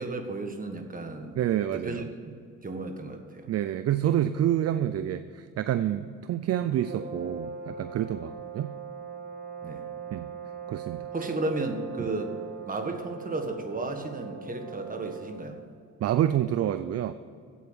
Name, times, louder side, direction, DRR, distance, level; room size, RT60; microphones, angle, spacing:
voice 1, 0.0-1.4 1.7-3.5 9.6-9.8 11.1-12.3 12.7-15.6, right 2 dB, 30° right, 5 dB, 1.6 m, -34 dB
voice 2, 1.4-2.1 3.5-8.7 10.1-10.3 10.7-11.1 16.0-17.1, right 11 dB, 55° right, 12 dB, 0.5 m, -28 dB
sound 1, 6.7-15.6, right 6 dB, 85° right, 1.5 m, -40 dB
8.5 x 8.2 x 8.8 m, 2.3 s
cardioid pair, 90°, 30 cm